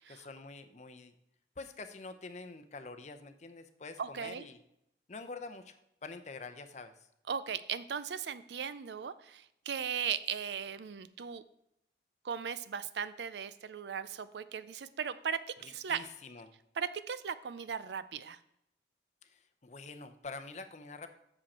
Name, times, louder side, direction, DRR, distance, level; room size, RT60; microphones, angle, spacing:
voice 1, 0.1-1.1 1.6-4.6 5.1-6.9 15.6-16.5 19.2-21.1, left 3 dB, 40° left, 8 dB, 0.6 m, -46 dB
voice 2, 4.0-4.4 7.3-11.4 12.2-16.0 16.8-18.4, right 7 dB, 75° right, 14 dB, 0.4 m, -37 dB
7.6 x 6.3 x 4.2 m, 0.79 s
head